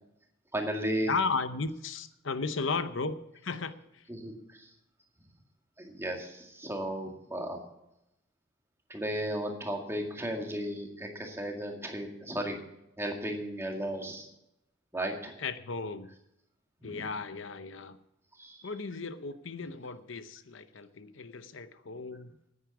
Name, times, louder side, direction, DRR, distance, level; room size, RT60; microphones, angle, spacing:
voice 1, 0.5-1.1 4.1-4.7 5.8-7.6 8.9-12.6 13.0-14.3 14.9-15.3 16.8-17.0 18.4-18.6, right 1 dB, 15° right, 2 dB, 2.0 m, -35 dB
voice 2, 1.1-3.2 3.4-4.0 15.4-16.1 16.8-18.0 18.6-22.3, left 4 dB, 70° left, 11 dB, 0.8 m, -35 dB
9.7 x 9.6 x 8.3 m, 0.85 s
head